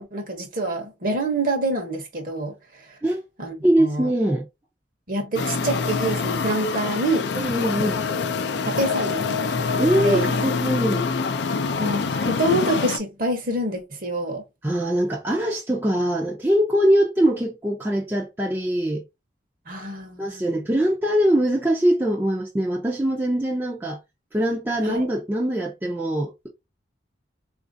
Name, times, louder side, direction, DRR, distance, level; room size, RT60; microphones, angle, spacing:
voice 1, 0.0-3.0 3.4-4.1 5.1-7.3 8.6-9.4 10.0-10.3 11.8-14.4 19.7-20.5 24.8-25.1, right 2 dB, 50° right, 0.8 m, -26 dB
voice 2, 3.6-4.5 7.3-8.0 9.8-11.1 14.6-19.0 20.2-24.0 24.3-26.5, right 1 dB, 10° right, 0.4 m, -22 dB
sound 1, 5.3-13.0, left 4 dB, 65° left, 0.4 m, -25 dB
4.0 x 2.5 x 2.5 m
head